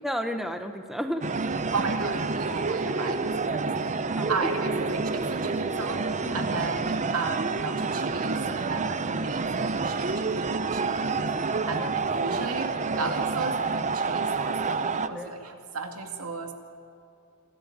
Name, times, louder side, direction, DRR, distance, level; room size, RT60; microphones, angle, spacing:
voice 1, 0.0-1.3 3.5-3.6 4.2-4.5 6.2-6.5 8.6-8.8 11.6-11.9 15.1-15.3, equal, ahead, 6 dB, 1.1 m, -33 dB
sound 1, 1.2-15.1, right 4 dB, 35° right, 0.7 m, -28 dB
voice 2, 1.7-11.3 11.7-16.5, right 4 dB, 80° right, 4 dB, 2.3 m, -35 dB
26.0 x 13.5 x 8.8 m, 2.7 s
head